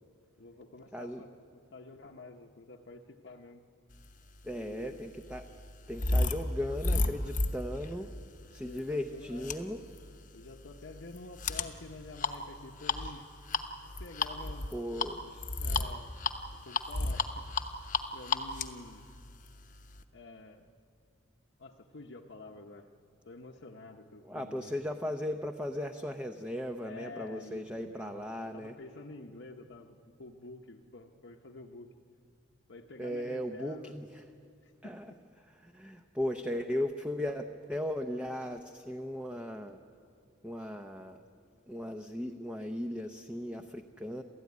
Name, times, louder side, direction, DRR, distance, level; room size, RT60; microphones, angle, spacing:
voice 1, 0.4-3.6 4.5-5.0 8.6-9.5 10.3-13.3 14.0-14.7 15.6-16.1 16.6-17.5 17.8-19.1 20.1-20.7 21.6-22.9 23.3-24.8 26.8-31.9 32.7-33.9 34.6-35.0, left 2 dB, 60° left, 1 dB, 1.0 m, -49 dB
voice 2, 0.9-1.2 4.4-5.5 5.9-8.1 8.5-9.8 14.7-15.4 24.2-28.7 33.0-34.3 34.8-35.1 35.5-39.8 40.4-41.2 41.7-44.2, left 1 dB, 5° right, 5 dB, 0.7 m, -37 dB
sound 1, 4.4-20.0, left 3 dB, 40° left, 1.0 m, -34 dB
28.5 x 14.0 x 9.6 m, 2.4 s
head